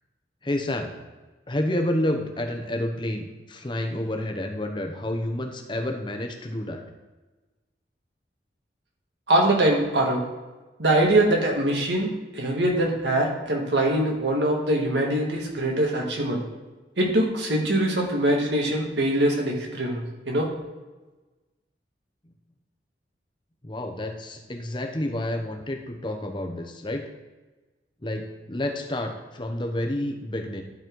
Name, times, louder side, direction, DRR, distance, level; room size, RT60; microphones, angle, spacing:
voice 1, 0.4-0.9 1.5-6.8 23.6-27.1 28.0-30.6, left 1 dB, 25° left, 4 dB, 0.8 m, -29 dB
voice 2, 9.3-10.2 10.8-16.4 17.0-20.5, right 1 dB, 80° right, 0 dB, 1.8 m, -23 dB
12.0 x 4.2 x 4.6 m, 1.2 s
head